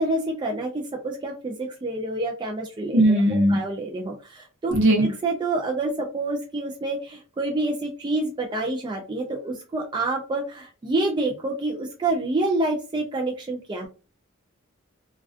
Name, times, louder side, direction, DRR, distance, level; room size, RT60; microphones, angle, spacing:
voice 1, 0.0-4.8 5.0-13.9, right 2 dB, 20° right, 1 dB, 0.3 m, -28 dB
voice 2, 2.9-3.6 4.7-5.1, right 1 dB, 60° right, 0 dB, 0.8 m, -18 dB
2.4 x 2.2 x 2.4 m, 0.34 s
head